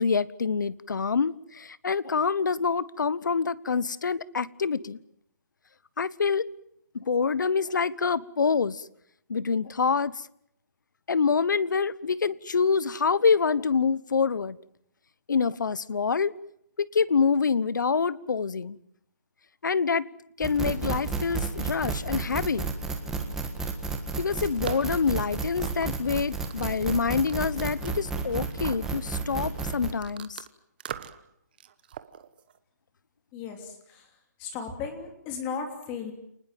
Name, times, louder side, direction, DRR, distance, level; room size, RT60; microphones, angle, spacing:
voice 1, 0.0-5.0 6.0-6.5 6.9-8.9 9.3-10.3 11.1-14.6 15.3-16.3 16.8-18.8 19.6-20.1 20.4-22.7 24.2-30.4, left 5 dB, 75° left, 20 dB, 1.1 m, -26 dB
sound 1, 20.4-29.9, right 4 dB, 5° right, 1.5 m, -32 dB
sound 2, 24.0-30.5 30.8-31.3 31.6-32.6, right 9 dB, 30° right, 1.1 m, -42 dB
voice 2, 33.3-34.1 34.4-36.1, left 6 dB, 15° left, 5 dB, 3.1 m, -36 dB
30.0 x 20.0 x 7.5 m, 0.72 s
hypercardioid pair, 175°, 10 cm